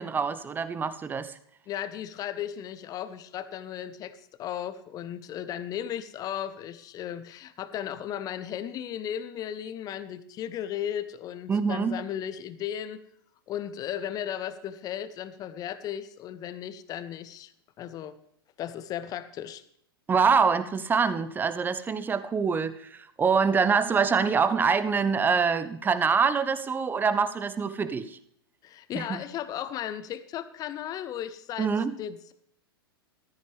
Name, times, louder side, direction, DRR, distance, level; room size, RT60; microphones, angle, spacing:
voice 1, 0.0-1.3 11.5-12.0 20.1-28.2 28.9-29.2 31.6-31.9, right 5 dB, 15° right, 14 dB, 0.8 m, -25 dB
voice 2, 1.7-13.0 13.5-17.5 17.8-18.2 18.6-19.6 28.6-31.7 32.0-32.3, left 10 dB, 30° left, 14 dB, 0.9 m, -35 dB
14.0 x 13.5 x 3.5 m, 0.70 s
figure-of-eight pair, 95°, 13 cm